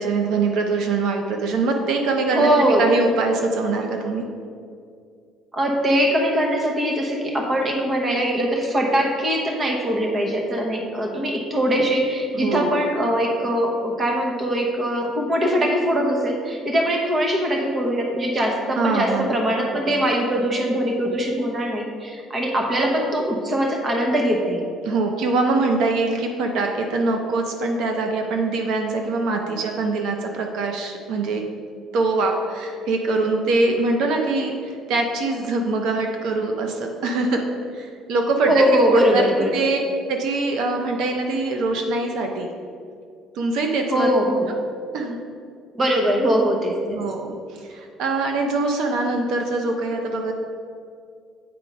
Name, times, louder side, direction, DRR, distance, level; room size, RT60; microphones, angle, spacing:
voice 1, 0.0-2.5 2.8-4.2 12.3-12.7 18.8-19.4 24.8-31.4 31.9-37.4 37.7-39.2 39.5-39.8 40.1-42.5 43.3-44.1 44.9-45.2 46.9-50.3, right 3 dB, 65° right, 3 dB, 0.7 m, -23 dB
voice 2, 2.3-2.9 5.5-24.6 38.5-39.6 43.9-44.5 45.7-47.0, equal, 25° right, 1 dB, 1.0 m, -22 dB
8.6 x 4.4 x 5.3 m, 2.3 s
cardioid pair, 165°, 0 cm